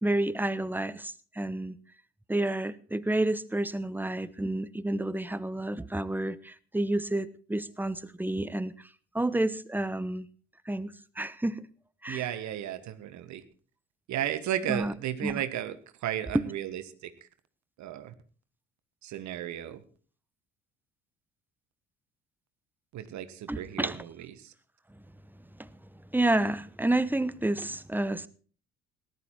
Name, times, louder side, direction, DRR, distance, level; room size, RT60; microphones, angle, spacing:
voice 1, 0.0-1.7 2.3-8.7 9.1-10.3 10.7-11.6 12.0-12.3 14.7-14.9 15.2-15.3 23.5-24.0 25.6-25.7 26.1-28.3, right 1 dB, 5° right, 16 dB, 0.9 m, -30 dB
voice 2, 12.1-13.4 14.1-17.1 17.8-18.1 19.0-19.8 22.9-24.5, right 11 dB, 55° right, 12 dB, 1.5 m, -34 dB
18.5 x 11.5 x 4.5 m, 0.41 s
figure-of-eight pair, 55°, 35 cm